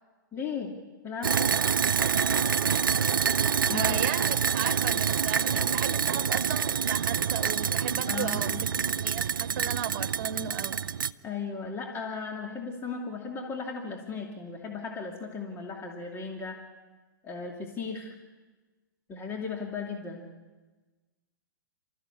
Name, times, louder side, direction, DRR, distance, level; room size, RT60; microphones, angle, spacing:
voice 1, 0.3-0.8 1.0-1.3 3.7-4.1 8.1-8.8 11.2-16.6 17.2-18.2 19.1-20.2, left 5 dB, 20° left, 1 dB, 2.7 m, -36 dB
sound 1, 1.2-11.1, right 7 dB, 80° right, 0.6 m, -27 dB
voice 2, 3.7-8.6 9.0-10.8, right 10 dB, 45° right, 9 dB, 1.8 m, -36 dB
28.0 x 14.0 x 8.5 m, 1.3 s
hypercardioid pair, 125°, 11 cm